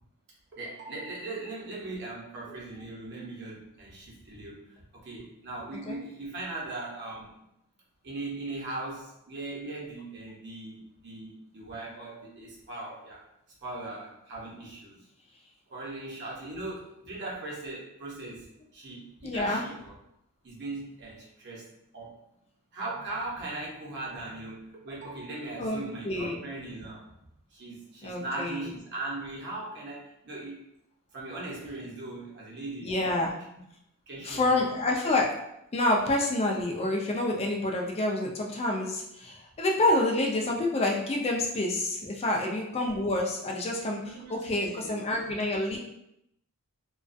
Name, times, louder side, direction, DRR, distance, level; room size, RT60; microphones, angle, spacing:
voice 1, 0.5-4.6 4.9-7.3 8.0-13.2 13.6-15.0 15.7-18.5 18.7-19.9 20.4-21.7 21.9-22.2 22.7-27.0 27.5-30.6 31.1-33.3 34.1-34.6 42.3-42.4 44.0-44.9, right 2 dB, 50° right, -5 dB, 0.7 m, -39 dB
voice 2, 19.2-19.6 25.6-26.4 28.0-28.7 32.8-33.3 34.2-35.4 35.7-45.8, left 2 dB, 25° left, 0 dB, 0.4 m, -28 dB
2.3 x 2.2 x 2.5 m, 0.81 s
head